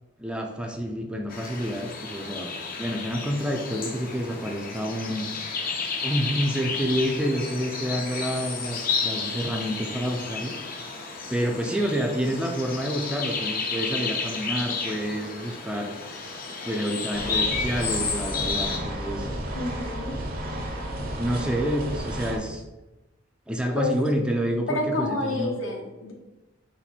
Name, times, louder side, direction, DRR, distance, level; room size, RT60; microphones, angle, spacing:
voice 1, 0.2-2.5 2.8-5.3 6.0-10.5 11.3-16.0 16.6-19.3 21.2-22.6 23.5-25.6, equal, 5° right, 2 dB, 0.4 m, -28 dB
sound 1, 1.3-18.8, left 4 dB, 45° left, 0.6 m, -32 dB
sound 2, 17.1-22.4, right 1 dB, 50° right, 0.8 m, -32 dB
voice 2, 19.5-20.2 23.8-24.1 24.7-26.1, left 2 dB, 70° left, 1 dB, 0.9 m, -29 dB
4.2 x 2.6 x 4.2 m, 1.0 s
head